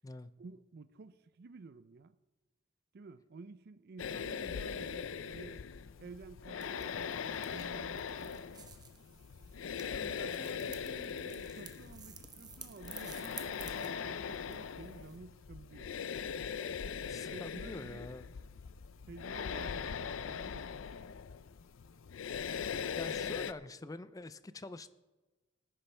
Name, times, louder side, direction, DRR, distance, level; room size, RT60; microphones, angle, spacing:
voice 1, 0.4-2.2 2.9-5.6 6.0-8.4 9.8-15.9 17.0-18.1 19.1-20.7, right 4 dB, 55° right, 13 dB, 0.5 m, -52 dB
sound 1, 4.0-23.5, left 7 dB, 90° left, 0.5 m, -40 dB
sound 2, 6.6-15.2, right 6 dB, 20° right, 0.9 m, -53 dB
voice 2, 17.1-18.3 23.0-24.9, left 2 dB, 20° left, 14 dB, 0.4 m, -45 dB
19.0 x 10.0 x 3.3 m, 1.2 s
head